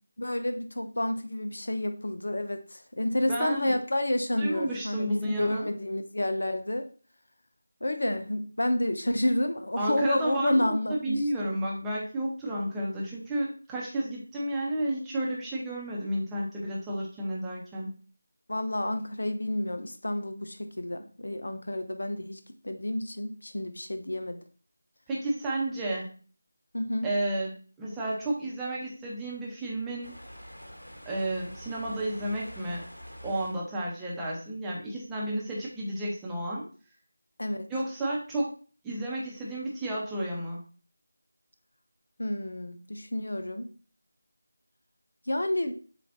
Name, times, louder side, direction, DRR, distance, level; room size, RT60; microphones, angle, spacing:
voice 1, 0.2-6.9 7.8-11.5 18.5-24.4 26.7-27.1 37.4-37.7 42.2-43.7 45.3-45.7, left 1 dB, 65° left, 8 dB, 0.6 m, -30 dB
voice 2, 3.3-3.8 4.4-5.7 9.8-17.9 25.1-26.1 27.0-30.1 31.1-32.8 33.2-36.6 37.7-38.5 38.8-40.6, right 1 dB, 5° right, -6 dB, 0.9 m, -32 dB
sound 1, 30.0-33.6, equal, 85° left, 1.1 m, -46 dB
7.4 x 2.5 x 2.6 m, 0.40 s
figure-of-eight pair, 165°, 0 cm